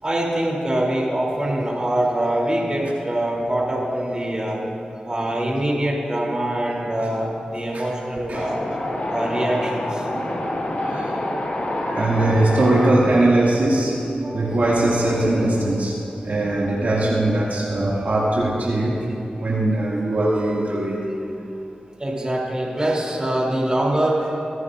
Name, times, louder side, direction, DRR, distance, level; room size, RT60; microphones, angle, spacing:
voice 1, 0.0-4.7 5.1-8.5 9.1-10.1 22.0-24.4, right 1 dB, 30° right, -3 dB, 3.4 m, -23 dB
Wind, 8.3-12.9, left 1 dB, 60° left, 1.7 m, -27 dB
voice 2, 10.1-10.5 10.8-11.2 11.8-21.0, right 1 dB, 70° right, -6 dB, 2.3 m, -21 dB
24.0 x 11.0 x 2.6 m, 2.7 s
cardioid pair, 60°, 3 cm